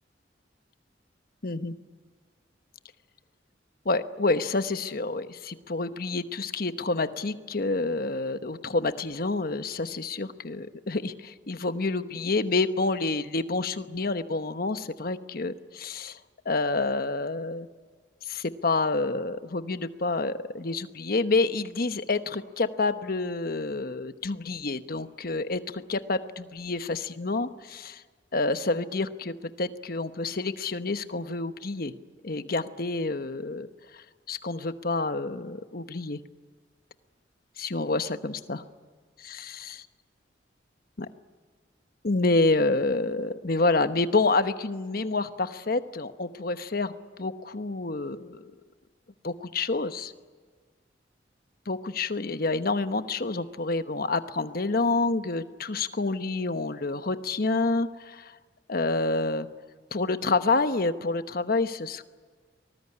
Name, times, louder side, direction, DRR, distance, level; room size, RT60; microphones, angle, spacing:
voice 1, 1.4-1.7 3.8-16.2 16.4-17.7 18.2-28.0 28.3-31.9 32.2-33.7 34.3-36.2 37.6-38.6 39.2-39.5 41.0-41.1 42.0-46.9 47.2-48.5 49.2-50.1 51.7-58.3 58.7-59.5 59.9-62.0, left 3 dB, 55° left, 10 dB, 1.1 m, -28 dB
24.5 x 19.5 x 9.8 m, 1.5 s
head